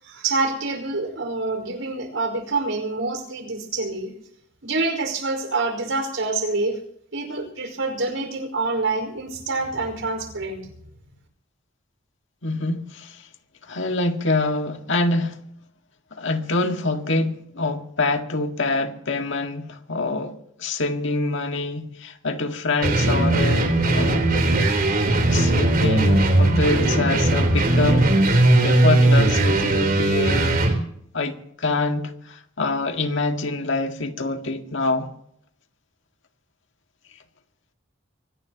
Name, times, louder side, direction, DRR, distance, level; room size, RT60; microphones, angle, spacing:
voice 1, 0.0-4.1 4.6-6.8 7.1-10.6, right 3 dB, 80° right, 5.1 m, -26 dB
voice 2, 12.4-13.3 13.7-15.4 16.1-24.3 25.3-28.2 28.6-30.6 31.1-35.1, left 2 dB, 65° left, 1.9 m, -25 dB
sound 1, 22.8-30.8, right 2 dB, 45° right, 3.9 m, -18 dB
24.5 x 17.5 x 3.0 m
head